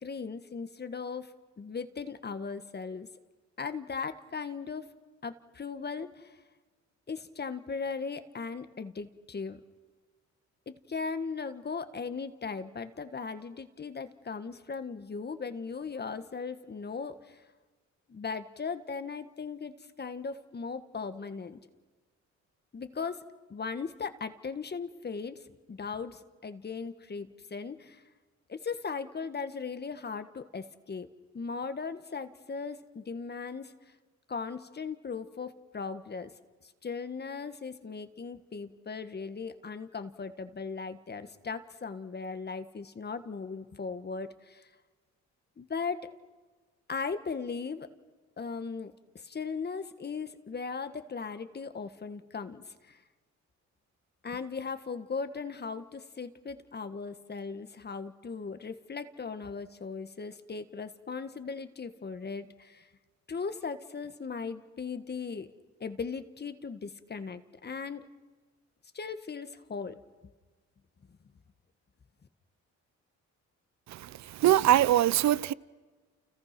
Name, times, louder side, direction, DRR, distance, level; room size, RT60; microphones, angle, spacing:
voice 1, 0.0-3.1 3.6-4.9 5.2-6.4 7.1-9.6 10.7-17.4 18.1-21.6 22.7-23.2 23.5-28.0 28.5-31.1 31.3-33.7 34.3-36.3 36.8-44.7 45.6-46.1 46.9-47.9 48.4-53.0 54.2-62.9 63.3-65.5 65.8-68.1 68.9-70.0, left 5 dB, 35° left, 1.6 m, -38 dB
voice 2, 73.9-75.5, right 12 dB, 65° right, 0.7 m, -23 dB
29.5 x 29.5 x 6.0 m
cardioid pair, 90°, 30 cm